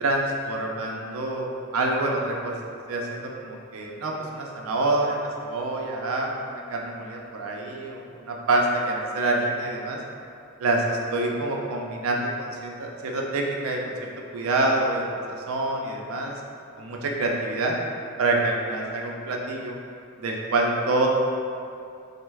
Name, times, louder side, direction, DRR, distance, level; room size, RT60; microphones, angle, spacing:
voice 1, 0.0-2.5 2.9-10.0 10.6-13.8 14.3-15.2 15.5-16.3 16.8-17.8 18.2-19.8 20.2-21.1, right 2 dB, 80° right, 0 dB, 0.4 m, -26 dB
3.1 x 2.0 x 3.3 m, 2.4 s
head